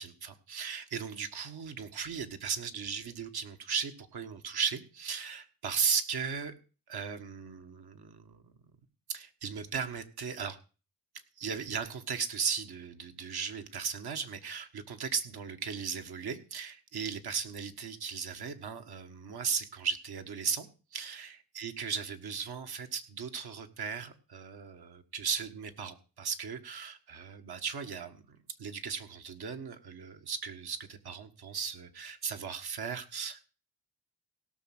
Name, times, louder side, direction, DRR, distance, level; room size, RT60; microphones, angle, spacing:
voice 1, 0.0-6.5 6.9-8.5 9.1-10.6 11.4-33.4, right 6 dB, 70° right, 6 dB, 1.7 m, -36 dB
17.0 x 6.5 x 6.1 m, 0.35 s
cardioid pair, 65°, 39 cm